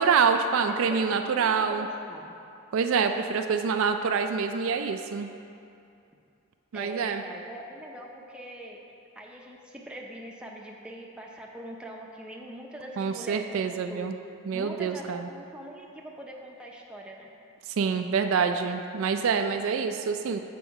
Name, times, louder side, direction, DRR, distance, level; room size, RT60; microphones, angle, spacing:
voice 1, 0.0-1.9 2.7-5.3 6.7-7.2 13.0-14.1 14.5-15.3 17.8-20.4, right 5 dB, 60° right, 7 dB, 0.3 m, -26 dB
voice 2, 0.6-2.3 6.7-8.8 9.2-14.1 14.5-17.4, right 1 dB, 5° right, -2 dB, 0.6 m, -42 dB
7.1 x 6.0 x 4.7 m, 2.6 s
head